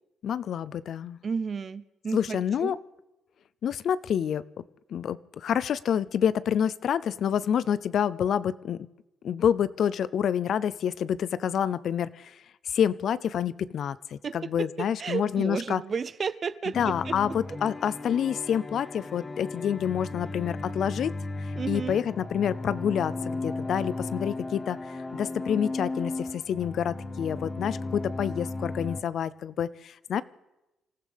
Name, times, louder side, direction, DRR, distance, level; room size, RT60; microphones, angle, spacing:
voice 1, 0.2-1.2 2.1-2.8 3.6-4.4 4.9-8.9 9.2-12.4 12.7-15.8 16.8-21.2 21.7-30.2, left 8 dB, 65° left, 18 dB, 0.5 m, -28 dB
voice 2, 1.2-2.8 14.2-14.7 15.0-17.1 21.6-22.0, right 5 dB, 45° right, 16 dB, 0.6 m, -32 dB
sound 1, 16.7-29.0, left 2 dB, 25° left, 1.1 m, -35 dB
27.0 x 14.5 x 3.5 m, 0.97 s
cardioid pair, 90°, 0 cm